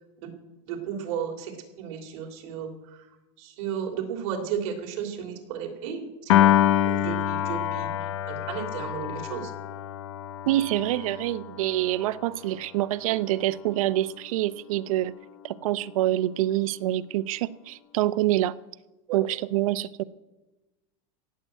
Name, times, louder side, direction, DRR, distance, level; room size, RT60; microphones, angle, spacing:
voice 1, 0.7-3.1 3.4-6.5 6.8-9.5 19.1-19.2, right 8 dB, 55° right, 3.0 m, -34 dB
Piano, 6.3-12.7, left 12 dB, 70° left, 0.7 m, -26 dB
voice 2, 10.5-15.1 15.4-18.6 19.1-20.0, right 14 dB, 85° right, 0.6 m, -26 dB
17.0 x 7.6 x 9.0 m
supercardioid pair, 175°, 17 cm